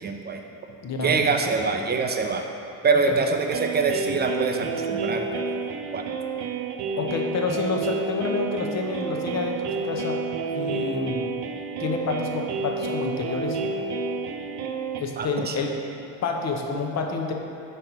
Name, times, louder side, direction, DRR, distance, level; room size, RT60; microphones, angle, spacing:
voice 1, 0.0-0.4 1.0-2.5 2.8-5.5 5.9-6.0 15.2-15.6, right 4 dB, 25° right, 4 dB, 0.4 m, -24 dB
voice 2, 0.8-1.2 7.0-10.2 10.5-11.2 11.8-13.6 15.0-15.8 16.2-17.3, left 4 dB, 40° left, 2 dB, 0.7 m, -28 dB
sound 1, 3.5-15.0, right 4 dB, 70° right, 0.6 m, -30 dB
5.5 x 4.4 x 3.9 m, 2.7 s
supercardioid pair, 90°, 41 cm